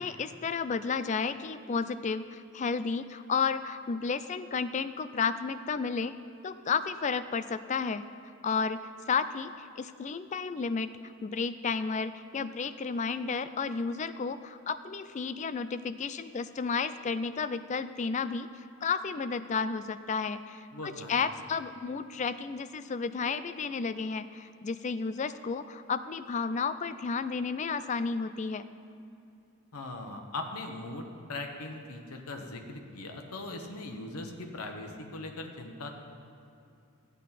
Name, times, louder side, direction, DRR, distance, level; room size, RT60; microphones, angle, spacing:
voice 1, 0.0-6.2 6.4-8.0 8.4-8.8 9.1-10.9 11.2-18.5 18.8-28.6, left 5 dB, 35° left, 12 dB, 0.3 m, -32 dB
voice 2, 20.7-21.1 29.7-36.0, left 2 dB, 85° left, 4 dB, 1.0 m, -40 dB
13.5 x 8.3 x 4.1 m, 2.7 s
head